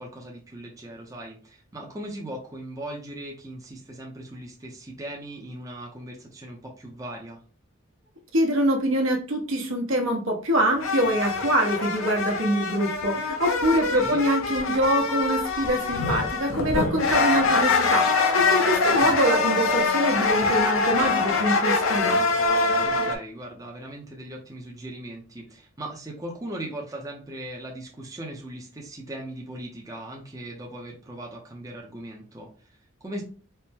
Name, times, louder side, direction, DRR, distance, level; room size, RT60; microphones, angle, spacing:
voice 1, 0.0-7.4 13.9-14.2 18.8-19.2 22.8-33.2, right 1 dB, 15° right, -1 dB, 0.5 m, -39 dB
voice 2, 8.3-22.2, equal, 70° right, 1 dB, 1.0 m, -24 dB
sound 1, 10.8-23.1, left 4 dB, 70° left, 0.6 m, -24 dB
4.3 x 2.1 x 3.4 m, 0.39 s
head